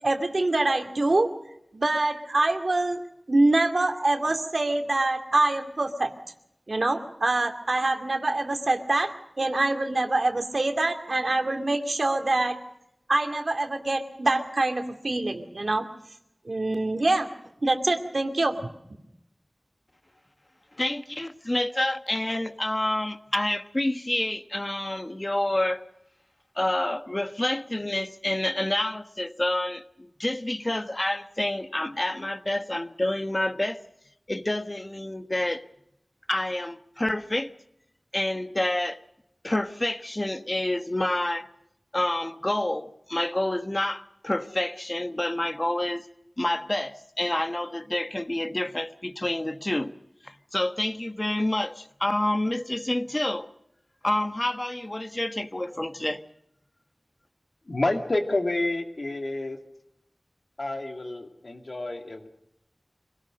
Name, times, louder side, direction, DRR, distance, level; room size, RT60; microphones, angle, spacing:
voice 1, 0.0-1.3 1.7-3.0 3.3-6.1 6.7-12.6 13.1-15.8 16.5-17.3 17.6-18.7, right 2 dB, 80° right, 6 dB, 2.4 m, -25 dB
voice 2, 20.8-25.8 26.6-33.8 34.3-35.6 36.3-37.5 38.1-39.0 39.4-41.5 41.9-46.1 46.4-49.9 50.2-53.5 54.0-56.2, left 1 dB, 35° left, 10 dB, 1.2 m, -28 dB
voice 3, 57.7-59.6 60.6-62.3, left 2 dB, 75° left, 4 dB, 2.6 m, -29 dB
25.5 x 18.0 x 6.5 m, 0.81 s
wide cardioid pair, 55°, 0 cm